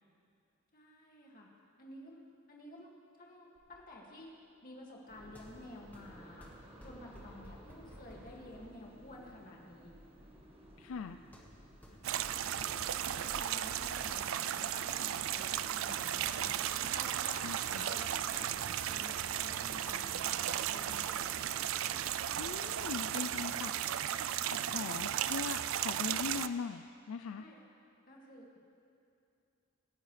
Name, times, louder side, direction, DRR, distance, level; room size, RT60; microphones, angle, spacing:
voice 1, 0.7-1.5 1.8-2.2 2.5-2.9 3.2-4.3 4.6-6.5 6.8-9.9 11.9-12.0 12.5-12.9 13.2-16.6 16.9-17.5 17.8-21.3 27.4-27.6 28.1-28.6, left 1 dB, 40° left, -2 dB, 2.2 m, -51 dB
sound 1, 3.5-19.7, equal, 10° left, 1.6 m, -59 dB
sound 2, 5.1-23.0, equal, 25° right, 1.4 m, -58 dB
voice 2, 10.8-11.2 17.4-17.8 22.4-23.7 24.2-27.4, left 5 dB, 75° left, 8 dB, 0.4 m, -41 dB
sound 3, 12.0-26.5, right 10 dB, 70° right, 0.4 m, -35 dB
26.0 x 10.0 x 3.3 m, 2.6 s
head